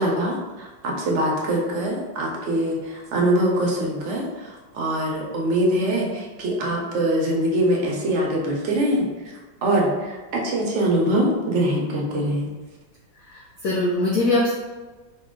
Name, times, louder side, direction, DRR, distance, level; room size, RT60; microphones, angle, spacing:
voice 1, 0.0-9.1 9.6-12.5, right 1 dB, 70° right, -2 dB, 0.6 m, -23 dB
voice 2, 13.3-14.5, left 2 dB, 70° left, -4 dB, 0.8 m, -22 dB
4.1 x 2.2 x 3.6 m, 1.2 s
omnidirectional pair, 2.1 m